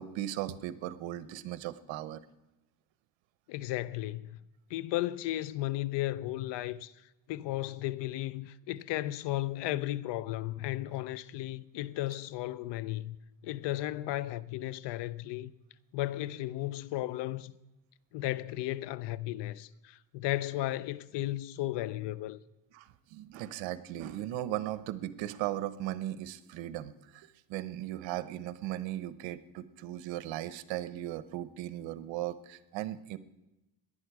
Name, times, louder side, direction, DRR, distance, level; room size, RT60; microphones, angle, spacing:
voice 1, 0.0-2.2 22.7-33.2, right 13 dB, 80° right, 0.9 m, -37 dB
voice 2, 3.5-4.4 4.7-6.9 7.3-13.2 13.4-15.5 15.9-17.6 18.1-22.4, left 15 dB, 70° left, 0.6 m, -34 dB
18.5 x 11.0 x 4.7 m
cardioid pair, 125°, 45 cm